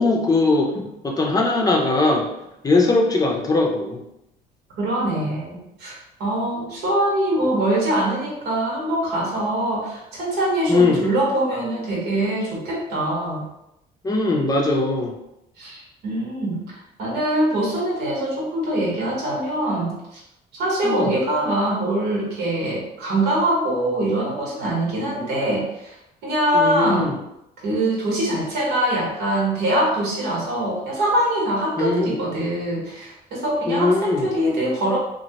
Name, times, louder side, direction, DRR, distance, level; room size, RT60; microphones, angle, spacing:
voice 1, 0.0-2.3 2.6-4.0 10.7-11.1 14.0-15.1 20.8-21.1 26.5-27.1 31.8-32.1 33.7-34.3, left 3 dB, 20° left, 0 dB, 0.5 m, -20 dB
voice 2, 4.8-13.4 15.6-20.2 20.5-26.0 26.2-27.1 27.6-35.0, right 1 dB, 80° right, -3 dB, 1.2 m, -23 dB
2.8 x 2.5 x 2.8 m, 0.83 s
cardioid pair, 110°, 17 cm